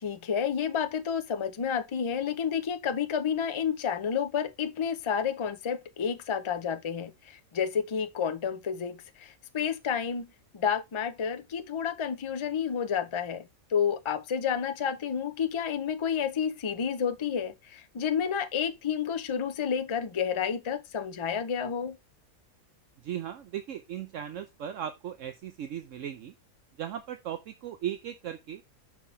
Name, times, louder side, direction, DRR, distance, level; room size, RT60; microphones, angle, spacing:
voice 1, 0.0-10.3 10.5-22.0, left 7 dB, 45° left, 0.3 m, -30 dB
voice 2, 23.0-26.3 26.8-28.6, right 10 dB, 70° right, 1.0 m, -37 dB
5.6 x 4.6 x 4.4 m
omnidirectional pair, 1.5 m